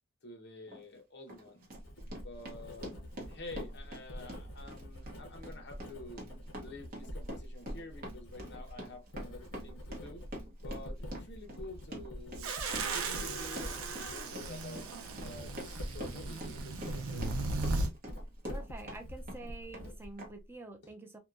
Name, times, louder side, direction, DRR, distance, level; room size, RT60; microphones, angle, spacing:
voice 1, 0.2-1.7 2.2-2.9 3.3-6.3 6.6-10.2 10.6-12.5 12.9-14.9 15.2-17.3, left 2 dB, 50° left, 0.8 m, -49 dB
Run, 0.7-0.8 1.3-19.0 19.3-19.9 20.2-20.3, equal, 40° right, 0.8 m, -46 dB
Writing, 1.7-20.5, equal, 80° left, 0.8 m, -46 dB
sound 1, 12.4-17.9, right 3 dB, 75° right, 0.6 m, -37 dB
voice 2, 18.4-21.2, right 2 dB, 10° right, 0.3 m, -47 dB
2.8 x 2.2 x 2.4 m
head